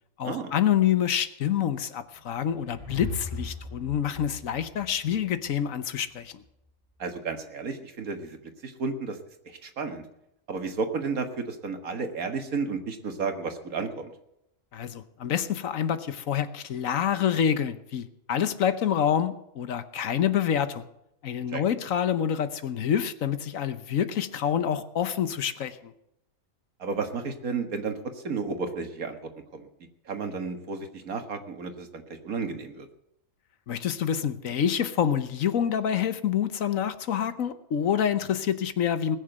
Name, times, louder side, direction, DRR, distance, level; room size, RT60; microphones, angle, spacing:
voice 1, 0.2-6.4 14.7-20.8 21.2-25.9 33.7-39.2, left 9 dB, 70° left, 12 dB, 1.2 m, -27 dB
sound 1, 2.1-5.5, left 2 dB, 20° right, 2.3 m, -39 dB
voice 2, 7.0-9.2 9.5-10.0 10.5-14.1 21.5-21.6 26.8-29.7 30.1-32.9, right 4 dB, 75° right, 6 dB, 2.0 m, -32 dB
20.0 x 6.7 x 7.9 m, 0.81 s
omnidirectional pair, 1.5 m